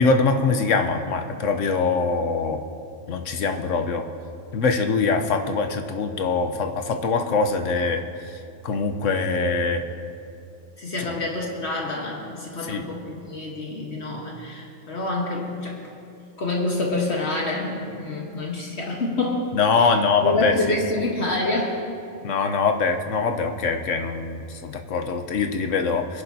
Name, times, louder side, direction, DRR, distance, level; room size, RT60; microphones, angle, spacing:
voice 1, 0.0-2.6 3.1-4.0 4.5-8.0 8.6-9.8 11.0-11.1 12.7-12.8 19.6-20.8 22.2-26.2, left 4 dB, 80° left, 6 dB, 1.2 m, -23 dB
voice 2, 10.8-15.8 16.4-21.8, left 2 dB, 60° left, -1 dB, 1.6 m, -27 dB
25.5 x 11.0 x 2.8 m, 2.6 s
omnidirectional pair, 1.3 m